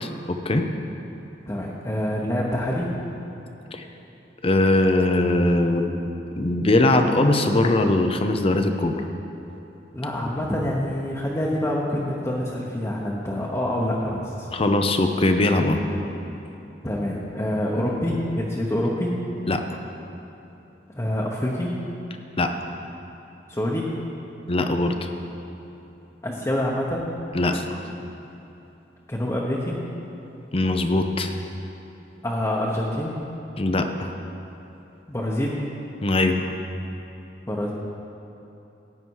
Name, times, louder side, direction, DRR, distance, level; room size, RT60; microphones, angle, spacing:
voice 1, 0.0-0.7 3.7-3.8 4.4-6.1 6.3-9.0 14.5-15.8 19.5-19.6 22.4-22.5 24.5-25.1 27.3-27.8 30.5-31.3 33.6-34.1 36.0-36.5, left 2 dB, 35° left, 6 dB, 0.7 m, -21 dB
voice 2, 1.5-2.9 9.9-14.5 16.8-19.1 20.9-21.7 23.5-23.9 26.2-27.1 29.1-29.8 32.2-33.1 35.1-35.6 37.5-37.7, left 1 dB, 15° left, -5 dB, 1.1 m, -26 dB
15.5 x 9.2 x 4.8 m, 3.0 s
head